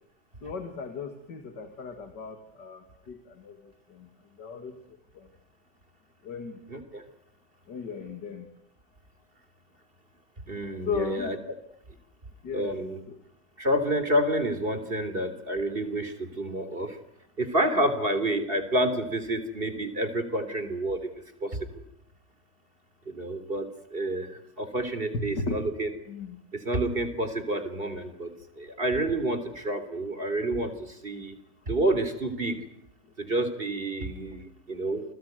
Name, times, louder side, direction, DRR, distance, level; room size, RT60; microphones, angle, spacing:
voice 1, 0.4-3.6 3.9-4.1 4.4-4.8 5.1-5.3 6.2-6.6 7.7-8.5 10.8-11.4 12.4-12.8 13.1-13.2 25.1-25.6 26.1-26.4, left 5 dB, 75° left, 7 dB, 3.0 m, -36 dB
voice 2, 6.7-7.0 10.5-11.4 12.5-13.0 13.6-17.0 17.4-21.1 21.4-21.6 23.1-24.3 24.6-25.9 26.7-31.3 31.7-32.7 33.2-35.0, right 1 dB, 30° right, 10 dB, 3.6 m, -29 dB
29.5 x 21.0 x 9.5 m, 0.72 s
omnidirectional pair, 1.9 m